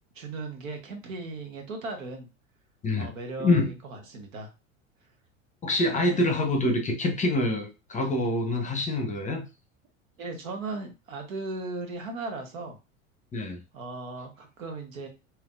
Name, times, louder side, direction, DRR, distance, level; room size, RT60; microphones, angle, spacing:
voice 1, 0.1-2.3 3.0-4.5 10.2-12.8 13.7-15.1, right 3 dB, 70° right, 4 dB, 1.1 m, -37 dB
voice 2, 5.6-9.4 13.3-13.6, left 2 dB, 20° left, 3 dB, 0.8 m, -25 dB
3.3 x 2.9 x 2.4 m, 0.28 s
figure-of-eight pair, 75°, 41 cm